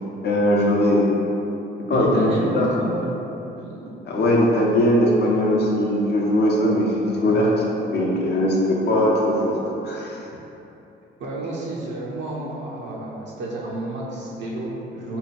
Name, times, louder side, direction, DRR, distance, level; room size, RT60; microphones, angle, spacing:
voice 1, 0.2-1.1 1.9-2.7 4.1-7.5 7.9-9.6 9.8-10.2, left 1 dB, 55° left, -3 dB, 0.7 m, -20 dB
voice 2, 1.9-3.2 3.6-4.0 7.2-7.5 11.2-15.2, right 2 dB, 65° right, -4 dB, 0.7 m, -30 dB
3.5 x 2.3 x 4.2 m, 2.9 s
cardioid pair, 90°, 20 cm